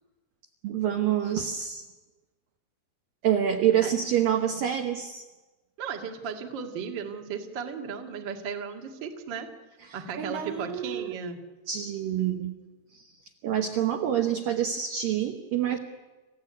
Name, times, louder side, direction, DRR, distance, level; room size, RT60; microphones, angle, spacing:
voice 1, 0.6-1.9 3.2-5.2 10.2-11.1 11.7-12.5 12.9-13.1 13.4-15.8, right 10 dB, 75° right, 4 dB, 2.1 m, -27 dB
voice 2, 5.8-9.5 9.9-11.4, right 6 dB, 50° right, 3 dB, 1.4 m, -35 dB
29.5 x 15.5 x 9.7 m, 1.2 s
omnidirectional pair, 5.6 m